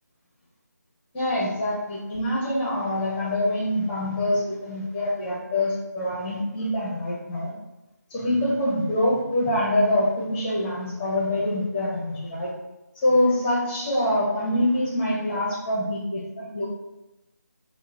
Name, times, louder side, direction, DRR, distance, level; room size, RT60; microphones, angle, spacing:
voice 1, 1.1-7.5 8.1-12.5 12.9-16.6, left 1 dB, 10° left, -6 dB, 0.7 m, -25 dB
5.9 x 2.4 x 2.7 m, 0.98 s
figure-of-eight pair, 170°, 10 cm